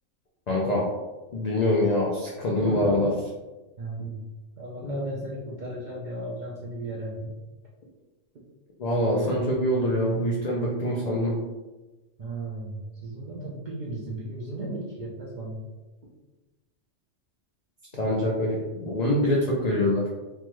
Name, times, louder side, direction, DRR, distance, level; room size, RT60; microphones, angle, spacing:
voice 1, 0.5-0.9 1.3-3.3 4.0-4.1 4.8-5.1 8.8-11.4 17.9-20.0, left 1 dB, 65° left, -3 dB, 0.4 m, -25 dB
voice 2, 3.8-4.2 4.6-7.4 8.3-8.4 12.2-15.6, right 2 dB, 60° right, -5 dB, 0.5 m, -35 dB
3.3 x 2.1 x 2.9 m, 1.1 s
omnidirectional pair, 1.3 m